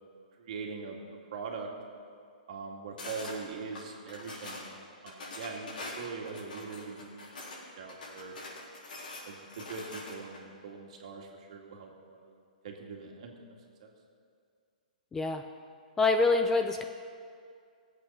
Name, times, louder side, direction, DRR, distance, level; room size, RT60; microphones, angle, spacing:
voice 1, 0.4-1.7 2.5-4.7 5.0-8.4 9.0-13.9, right 4 dB, 50° right, 1 dB, 2.1 m, -42 dB
sound 1, 3.0-3.4 3.7-4.7 5.1-7.6 7.9-10.4, left 2 dB, 85° left, 4.0 m, -44 dB
voice 2, 15.1-15.4 16.0-16.8, left 3 dB, 10° left, 6 dB, 0.4 m, -25 dB
18.0 x 8.2 x 5.5 m, 2.2 s
hypercardioid pair, 165°, 5 cm